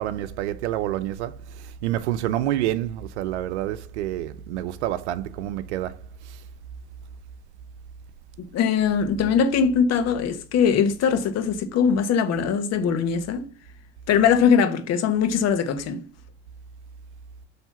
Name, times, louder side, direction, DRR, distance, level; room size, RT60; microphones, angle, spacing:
voice 1, 0.0-1.4 1.8-6.0, right 13 dB, 75° right, 0.7 m, -28 dB
voice 2, 8.4-13.5 14.1-16.0, left 7 dB, 50° left, 1.4 m, -21 dB
7.1 x 3.3 x 5.7 m
hypercardioid pair, 85°, 34 cm